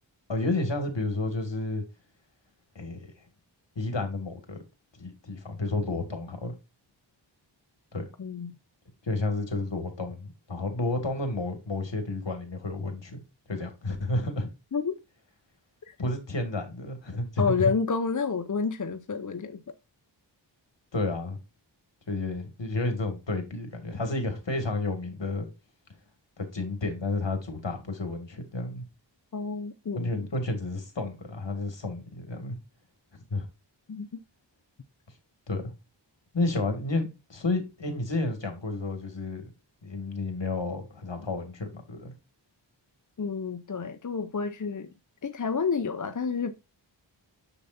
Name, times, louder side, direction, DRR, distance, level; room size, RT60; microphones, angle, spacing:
voice 1, 0.3-1.8 2.8-3.0 3.8-4.6 4.9-6.6 7.9-8.0 9.0-13.2 13.5-14.5 16.0-17.7 20.9-21.4 22.1-25.5 26.4-28.8 30.0-32.6 33.3-33.5 35.5-35.7 36.3-39.4 39.8-42.1, left 2 dB, 70° left, 2.2 m, -31 dB
voice 2, 8.2-8.5 14.7-15.0 15.9-16.0 17.4-19.6 29.3-30.1 33.9-34.2 43.2-44.9 45.2-46.5, left 5 dB, 40° left, 0.7 m, -29 dB
6.9 x 6.9 x 2.6 m
wide cardioid pair, 45°, 45 cm